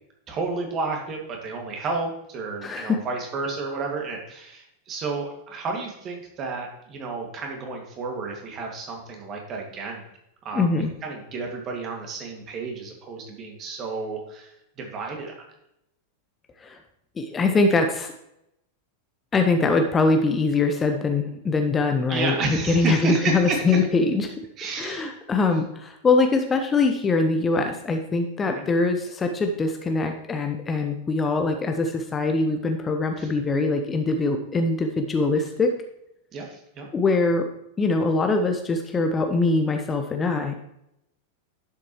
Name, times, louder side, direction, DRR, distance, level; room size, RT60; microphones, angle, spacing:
voice 1, 0.3-10.1 10.4-15.3 22.1-23.8 24.6-25.1 28.4-28.7 33.2-33.3 36.3-36.9, right 4 dB, 30° right, 1 dB, 2.3 m, -31 dB
voice 2, 2.6-3.0 10.5-10.9 16.6-16.8 17.2-18.1 19.3-24.3 24.8-35.7 36.9-37.5 37.8-40.5, left 3 dB, 20° left, 5 dB, 0.8 m, -23 dB
11.0 x 7.4 x 3.2 m, 0.82 s
figure-of-eight pair, 90°, 0 cm